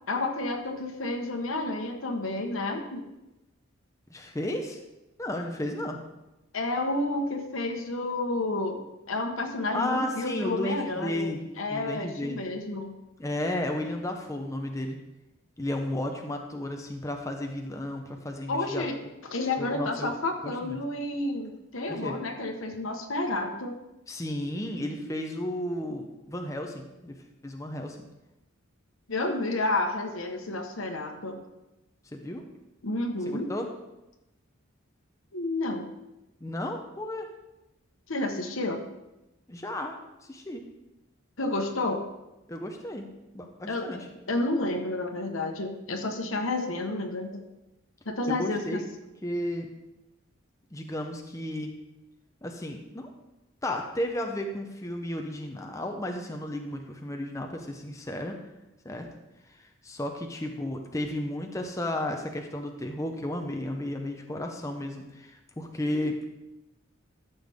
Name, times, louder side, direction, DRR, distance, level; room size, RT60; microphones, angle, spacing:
voice 1, 0.1-3.0 6.5-12.9 18.5-19.0 19.3-23.7 29.1-31.4 32.8-33.5 35.3-35.9 38.1-38.8 41.4-42.0 43.6-44.0 44.3-47.4 48.0-48.8, left 2 dB, 80° left, 4 dB, 1.3 m, -30 dB
voice 2, 4.1-4.8 5.2-6.0 9.7-12.4 13.2-15.0 15.6-18.9 19.6-20.1 20.4-20.8 21.9-22.2 24.1-28.0 32.1-32.5 33.5-33.7 36.4-37.3 39.5-40.0 40.3-40.7 42.5-43.0 43.3-44.1 48.3-48.8 49.2-49.7 50.7-51.7 52.4-53.1 53.6-58.4 58.8-59.1 59.5-66.2, left 1 dB, 15° left, 3 dB, 0.7 m, -33 dB
13.0 x 7.0 x 3.6 m, 0.95 s
head